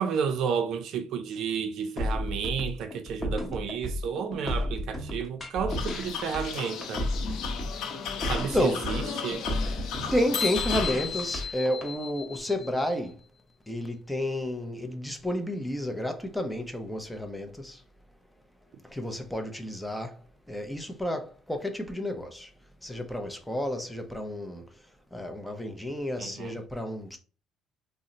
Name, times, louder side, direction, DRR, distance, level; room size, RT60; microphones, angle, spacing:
voice 1, 0.0-7.1 8.3-9.4 26.2-26.6, right 7 dB, 60° right, 0.4 m, -31 dB
sound 1, 2.0-11.9, left 1 dB, 20° left, 0.9 m, -32 dB
sound 2, 5.7-11.5, left 7 dB, 65° left, 0.5 m, -35 dB
voice 2, 8.5-8.9 10.1-13.2 13.7-17.8 18.9-20.2 20.5-22.5 22.8-24.6 25.1-27.2, left 1 dB, 5° left, 0.5 m, -31 dB
sound 3, 10.3-13.0, left 6 dB, 50° left, 0.9 m, -35 dB
2.7 x 2.0 x 3.8 m
cardioid pair, 125°, 0 cm